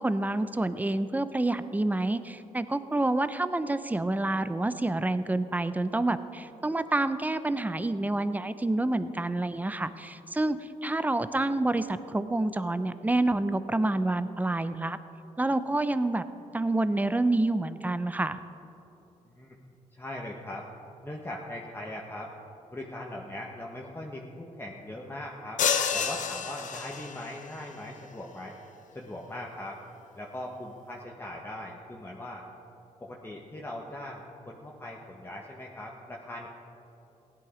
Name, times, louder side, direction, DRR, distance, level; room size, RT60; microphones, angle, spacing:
voice 1, 0.0-15.0 15.4-16.2 16.5-18.4, right 2 dB, 10° right, 12 dB, 0.7 m, -28 dB
voice 2, 19.3-19.6 19.9-20.7 21.0-22.3 22.7-25.6 25.9-28.5 28.9-29.8 30.1-32.4 33.0-36.5, left 1 dB, 15° left, -2 dB, 1.4 m, -40 dB
sound 1, 25.6-27.4, left 7 dB, 70° left, 1.0 m, -29 dB
16.0 x 11.0 x 5.1 m, 2.9 s
cardioid pair, 70°, 13 cm